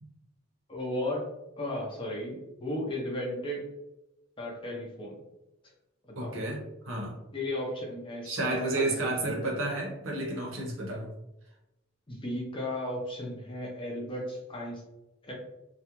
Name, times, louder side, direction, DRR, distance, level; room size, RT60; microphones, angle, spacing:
voice 1, 0.7-1.3 1.6-3.6 4.4-5.2 6.2-6.3 7.3-8.9 9.2-9.5 12.1-14.8 15.2-15.3, left 1 dB, 25° left, -2 dB, 0.6 m, -35 dB
voice 2, 6.2-7.1 8.2-11.1, right 2 dB, 65° right, -1 dB, 0.8 m, -31 dB
2.4 x 2.2 x 2.9 m, 0.92 s
head